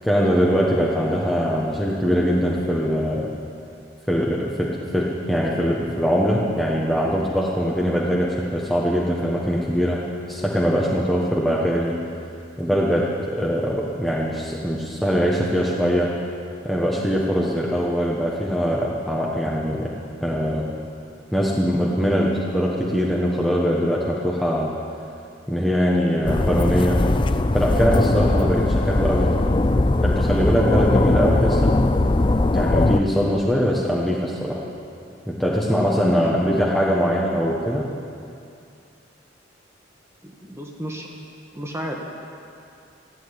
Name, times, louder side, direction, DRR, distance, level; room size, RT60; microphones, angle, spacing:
voice 1, 0.0-3.3 4.1-10.0 10.3-11.9 12.6-16.1 16.6-19.9 20.2-20.7 21.3-24.7 25.5-27.0 27.5-29.3 30.0-31.8 32.5-34.6 35.3-37.9, equal, ahead, -5 dB, 1.3 m, -22 dB
sound 1, 26.3-33.0, left 2 dB, 25° left, 0.5 m, -20 dB
voice 2, 36.1-36.6 40.2-41.1 41.5-42.0, equal, 15° right, 0 dB, 1.6 m, -33 dB
16.0 x 9.1 x 9.7 m, 2.5 s
head